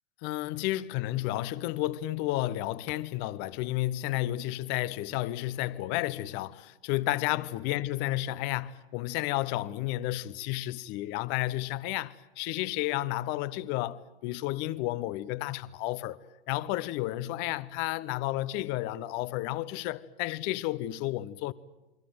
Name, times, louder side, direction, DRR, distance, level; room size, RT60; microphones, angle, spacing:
voice 1, 0.2-16.2 16.5-21.5, left 16 dB, 40° left, 1.0 m, -32 dB
29.0 x 23.5 x 7.8 m
figure-of-eight pair, 100°, 29 cm